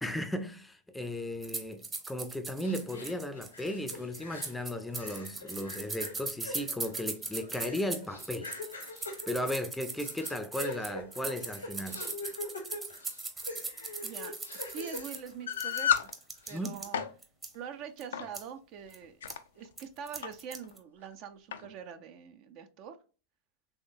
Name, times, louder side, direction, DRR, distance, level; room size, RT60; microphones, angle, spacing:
voice 1, 0.0-8.5 9.3-12.0 16.5-16.7, left 1 dB, 5° left, 0.5 m, -36 dB
sound 1, 1.4-16.9 17.2-17.5 18.0-18.1 18.3-18.4 18.9-19.0 19.3-19.4 19.8-20.8, right 3 dB, 20° right, 0.8 m, -39 dB
sound 2, 2.6-4.6 4.9-16.1 16.4-16.6, left 2 dB, 85° left, 1.1 m, -44 dB
voice 2, 14.0-16.1 16.5-17.0 17.5-19.1 19.6-23.0, right 7 dB, 45° right, 0.5 m, -44 dB
sound 3, 15.5-16.1 16.7-17.1 18.1-18.3 19.0-19.4 20.2-20.3 20.6-20.7 21.5-21.7, left 9 dB, 70° left, 0.4 m, -30 dB
3.6 x 3.4 x 2.6 m
figure-of-eight pair, 90°, 0 cm